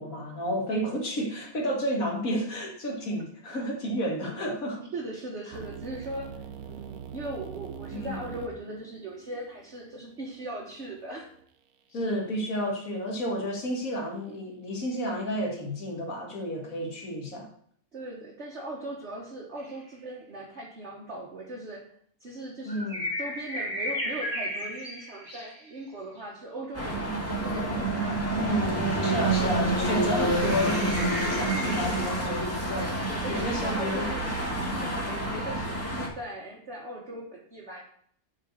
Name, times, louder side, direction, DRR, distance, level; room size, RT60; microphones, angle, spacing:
voice 1, 0.0-4.9 7.9-8.3 11.9-17.5 22.6-23.0 28.3-34.1 34.6-34.9, equal, 70° left, 2.3 m, -31 dB
voice 2, 4.9-11.3 17.9-21.9 22.2-28.2 31.5-32.1 33.1-37.8, right 1 dB, 50° right, 1.5 m, -39 dB
sound 1, 5.5-11.4, right 9 dB, 85° right, 1.2 m, -44 dB
sound 2, 19.6-19.7 22.7-25.7 30.7-32.2, left 1 dB, 25° right, 1.8 m, -34 dB
sound 3, 26.7-36.1, right 2 dB, 10° left, 2.0 m, -28 dB
7.5 x 4.9 x 6.4 m
omnidirectional pair, 1.5 m